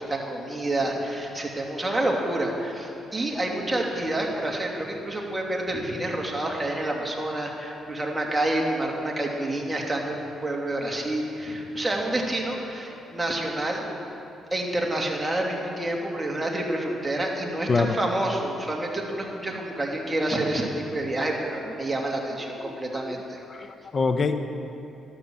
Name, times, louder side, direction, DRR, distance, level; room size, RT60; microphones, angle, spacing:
voice 1, 0.1-13.8 14.5-23.4, right 1 dB, 15° right, -1 dB, 2.5 m, -28 dB
voice 2, 22.6-23.0 23.5-24.4, left 4 dB, 40° left, 8 dB, 0.9 m, -25 dB
13.0 x 11.5 x 7.7 m, 2.8 s
cardioid pair, 90°, 0 cm